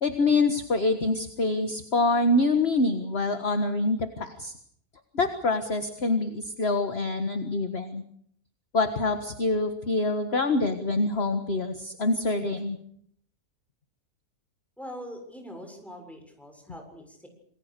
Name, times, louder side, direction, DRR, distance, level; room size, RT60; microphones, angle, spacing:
voice 1, 0.0-4.5 5.1-8.0 8.7-12.8, left 2 dB, 40° left, 7 dB, 1.8 m, -25 dB
voice 2, 14.8-17.3, equal, ahead, 3 dB, 7.0 m, -42 dB
27.5 x 20.5 x 6.8 m, 0.67 s
omnidirectional pair, 1.8 m